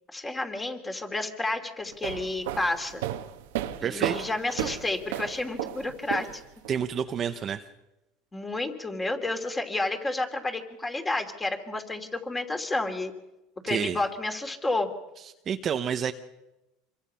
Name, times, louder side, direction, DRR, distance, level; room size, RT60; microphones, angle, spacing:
voice 1, 0.1-3.0 3.8-6.4 8.3-13.1 13.6-14.9, left 2 dB, 15° left, 5 dB, 2.7 m, -30 dB
sound 1, 1.9-6.7, right 12 dB, 90° right, 1.4 m, -34 dB
voice 2, 3.8-4.3 6.7-7.7 13.7-14.0 15.2-16.1, right 8 dB, 30° right, 7 dB, 0.9 m, -29 dB
26.0 x 23.0 x 5.7 m, 0.97 s
supercardioid pair, 140°, 0 cm